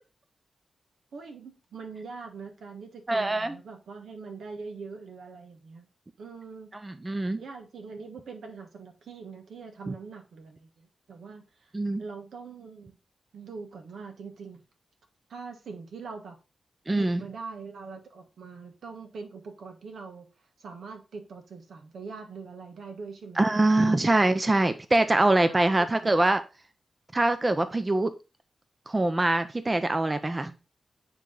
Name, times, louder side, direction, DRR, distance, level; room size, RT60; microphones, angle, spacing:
voice 1, 1.1-5.9 6.2-6.7 7.4-11.7 12.0-13.0 13.3-14.6 15.3-16.4 16.9-20.3 20.6-23.5 23.8-24.0 25.5-26.2, right 4 dB, 85° right, 4 dB, 1.3 m, -43 dB
voice 2, 3.1-3.6 6.8-7.4 11.7-12.0 16.9-17.2 23.4-26.4 27.1-28.1 28.9-30.5, right 2 dB, 25° right, 10 dB, 0.6 m, -23 dB
9.2 x 3.1 x 3.7 m, 0.29 s
cardioid pair, 75°, 0 cm